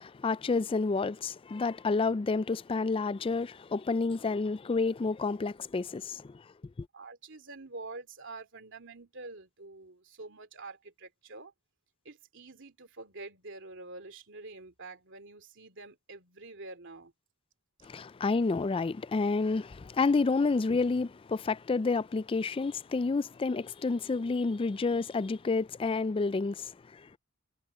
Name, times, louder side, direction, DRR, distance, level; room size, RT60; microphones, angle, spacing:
voice 1, 0.0-6.4 6.8-6.9 17.8-27.2, left 4 dB, 25° left, 0.3 m, -29 dB
voice 2, 6.9-11.5 12.0-17.1, right 3 dB, 55° right, 3.0 m, -47 dB
head